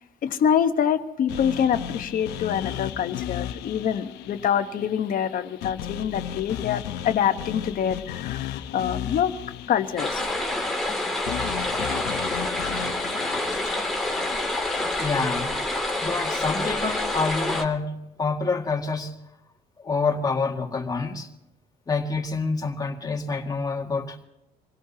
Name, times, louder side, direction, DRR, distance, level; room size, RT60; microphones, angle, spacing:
voice 1, 0.2-9.3 9.7-10.2, left 8 dB, 55° left, 1.2 m, -25 dB
sound 1, 1.3-15.4, left 10 dB, 85° left, 0.8 m, -36 dB
sound 2, 10.0-17.6, left 2 dB, ahead, 2.5 m, -27 dB
voice 2, 15.0-15.6 16.0-19.2 19.8-21.3 21.9-24.2, left 4 dB, 20° left, 2.0 m, -27 dB
26.5 x 17.0 x 2.9 m
cardioid pair, 110°, 17 cm